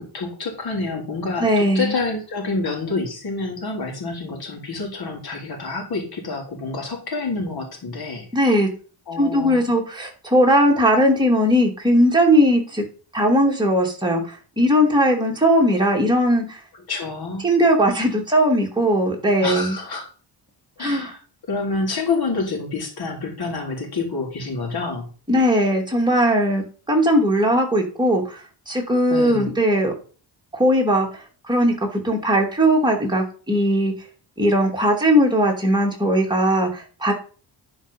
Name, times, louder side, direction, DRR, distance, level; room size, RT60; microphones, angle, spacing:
voice 1, 0.0-8.5 9.1-9.6 16.9-17.5 19.4-20.1 20.8-21.2 21.5-25.1 29.1-29.5, left 3 dB, 55° left, 2 dB, 3.6 m, -28 dB
voice 2, 1.4-2.0 8.3-8.7 9.2-12.8 13.1-16.6 17.4-19.8 20.8-21.1 25.3-28.2 28.7-29.9 30.5-31.1 31.5-33.9 34.4-37.1, equal, 10° right, 0 dB, 2.9 m, -19 dB
11.0 x 5.1 x 5.5 m, 0.38 s
cardioid pair, 90°, 45 cm